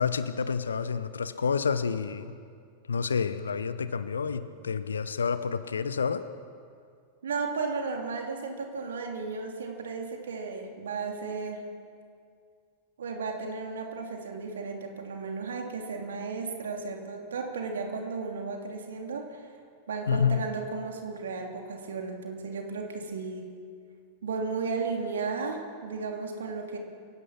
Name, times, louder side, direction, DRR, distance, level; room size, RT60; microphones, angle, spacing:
voice 1, 0.0-2.4 2.9-6.2 20.1-20.4, left 6 dB, 70° left, 13 dB, 1.0 m, -29 dB
voice 2, 7.2-11.6 13.0-19.4 19.9-23.5 24.2-26.8, right 4 dB, 65° right, 2 dB, 3.1 m, -34 dB
28.5 x 16.5 x 6.0 m, 2.2 s
figure-of-eight pair, 90°, 0 cm